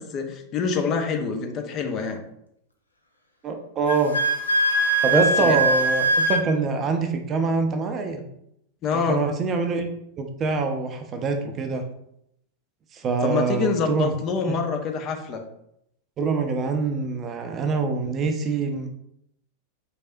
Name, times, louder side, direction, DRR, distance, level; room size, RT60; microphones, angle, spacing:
voice 1, 0.0-2.2 5.1-5.6 8.8-9.2 13.2-15.4, left 5 dB, 35° left, 4 dB, 0.6 m, -26 dB
voice 2, 3.4-4.2 5.0-8.2 9.1-9.9 10.2-11.8 12.9-14.1 16.2-18.9, right 4 dB, 30° right, 6 dB, 0.5 m, -25 dB
Wind instrument woodwind instrument, 3.9-6.4, right 2 dB, 80° left, 0.6 m, -21 dB
4.1 x 3.3 x 2.6 m, 0.76 s
figure-of-eight pair, 90°, 0 cm